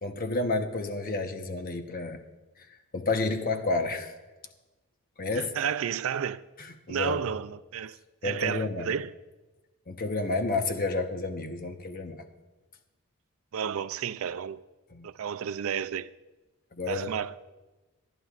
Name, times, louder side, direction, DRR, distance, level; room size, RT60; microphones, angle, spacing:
voice 1, 0.0-2.2 2.6-4.1 5.2-5.5 6.6-7.2 8.2-9.0 9.9-12.2 14.9-15.1 16.7-17.1, left 3 dB, 40° left, 1.0 m, -30 dB
voice 2, 5.3-6.4 6.9-9.1 13.5-14.6 15.0-16.1 16.9-17.3, right 8 dB, 65° right, 0.4 m, -32 dB
26.5 x 11.0 x 2.5 m
head